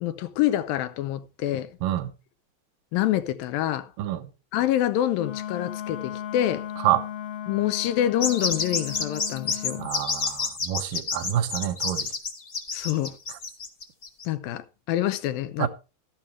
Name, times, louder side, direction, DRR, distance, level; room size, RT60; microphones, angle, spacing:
voice 1, 0.0-1.7 2.9-3.9 4.5-6.7 7.5-9.8 12.7-13.2 14.3-15.7, left 12 dB, 90° left, 2.6 m, -26 dB
voice 2, 1.8-2.1 4.0-4.2 6.8-7.0 9.8-12.1 15.6-15.7, right 12 dB, 80° right, 2.6 m, -27 dB
Wind instrument woodwind instrument, 5.1-9.9, left 10 dB, 75° left, 2.8 m, -36 dB
sound 1, 8.2-14.2, left 4 dB, 40° left, 1.2 m, -29 dB
13.0 x 11.0 x 3.2 m
omnidirectional pair, 4.0 m